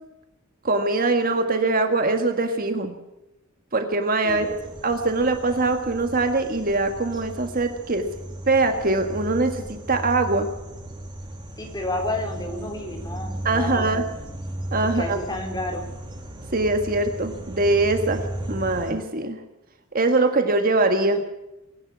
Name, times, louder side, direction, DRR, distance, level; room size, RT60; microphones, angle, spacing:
voice 1, 0.6-2.9 3.7-4.6 4.8-8.1 8.5-10.5 13.4-14.0 14.7-15.2 16.5-18.2 18.5-19.4 19.9-21.2, right 2 dB, 40° right, 6 dB, 1.7 m, -22 dB
sound 1, 4.3-18.9, right 1 dB, 20° right, 3.2 m, -35 dB
voice 2, 11.6-14.0 14.9-15.8, left 1 dB, 20° left, 3 dB, 4.0 m, -30 dB
23.0 x 11.5 x 9.7 m, 0.92 s
head